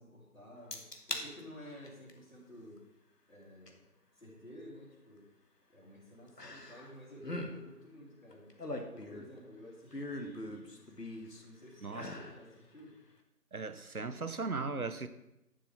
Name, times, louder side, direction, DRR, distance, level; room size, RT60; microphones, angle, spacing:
voice 1, 0.0-2.8 3.3-3.8 4.1-5.3 5.7-8.5 8.9-10.9 11.3-13.0, equal, 55° left, -10 dB, 3.8 m, -52 dB
sound 1, 0.7-1.3 1.7-2.1 3.7-3.8 6.4-6.9 7.2-7.5 8.3-9.4 9.9-11.4 11.9-12.4 12.8-12.9, left 2 dB, 90° left, 1.9 m, -41 dB
voice 2, 13.5-15.1, right 4 dB, 65° right, 11 dB, 1.0 m, -37 dB
11.0 x 5.2 x 7.2 m, 0.89 s
figure-of-eight pair, 175°, 47 cm